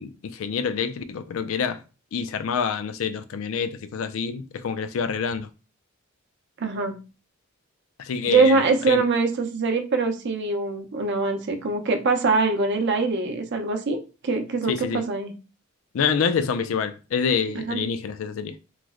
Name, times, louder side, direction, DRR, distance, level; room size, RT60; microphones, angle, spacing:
voice 1, 0.0-1.8 2.1-5.5 8.0-8.6 8.9-9.0 14.7-15.0 15.9-18.6, left 6 dB, 70° left, 0.4 m, -27 dB
voice 2, 6.6-7.0 8.3-14.0 14.2-15.3 17.5-17.8, right 3 dB, 60° right, 0.6 m, -23 dB
3.1 x 2.0 x 3.6 m
head